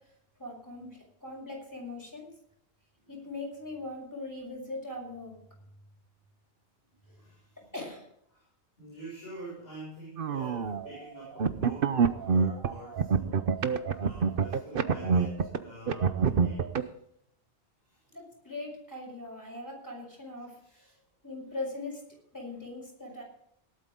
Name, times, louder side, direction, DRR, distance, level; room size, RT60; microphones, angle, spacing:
voice 1, 0.4-2.3 3.1-5.3 7.7-8.1 18.1-20.6 21.2-22.0 22.3-23.2, left 2 dB, 15° left, -1 dB, 6.3 m, -40 dB
voice 2, 7.0-7.6 8.3-8.4 8.8-16.9 17.8-18.0 20.6-20.9, right 1 dB, 65° left, -6 dB, 7.0 m, -46 dB
sound 1, 10.2-10.9 11.4-15.6 15.9-16.8, right 6 dB, 55° right, 1.0 m, -26 dB
18.5 x 12.5 x 3.8 m, 0.72 s
omnidirectional pair, 1.1 m